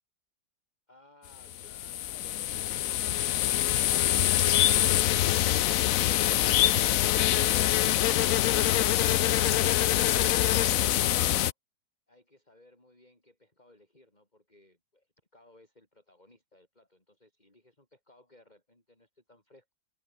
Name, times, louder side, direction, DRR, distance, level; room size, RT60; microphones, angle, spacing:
voice 1, 0.9-3.3 12.1-19.7, left 1 dB, 25° left, 5.4 m, -59 dB
sound 1, 1.4-11.5, left 13 dB, 65° left, 0.9 m, -25 dB
omnidirectional pair, 1.9 m